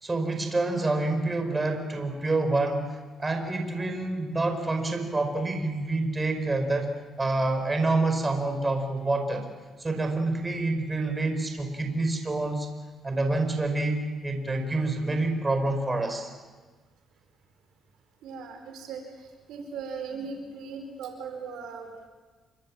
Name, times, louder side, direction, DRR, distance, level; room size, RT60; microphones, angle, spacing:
voice 1, 0.0-9.4 9.8-12.7 13.0-16.3, right 2 dB, 20° right, 5 dB, 5.0 m, -27 dB
voice 2, 18.2-19.0 19.5-22.1, right 5 dB, 85° right, 4 dB, 4.5 m, -38 dB
28.0 x 25.5 x 7.6 m, 1.3 s
cardioid pair, 90°, 0 cm